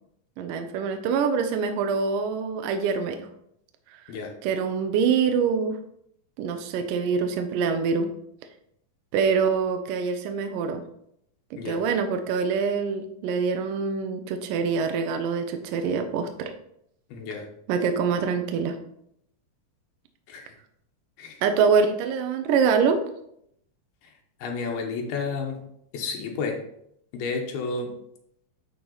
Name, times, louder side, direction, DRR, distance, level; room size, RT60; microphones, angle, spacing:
voice 1, 0.4-3.3 3.9-4.0 4.4-5.8 6.4-8.1 9.1-10.8 11.5-16.5 17.7-18.8 21.4-23.0, right 5 dB, 75° right, 6 dB, 2.2 m, -25 dB
voice 2, 17.1-17.5 20.3-20.5 21.2-21.4 24.0-24.1 24.4-25.6 25.9-26.6 27.1-27.9, left 4 dB, 85° left, 1 dB, 3.1 m, -31 dB
11.0 x 4.6 x 4.0 m, 0.73 s
omnidirectional pair, 4.2 m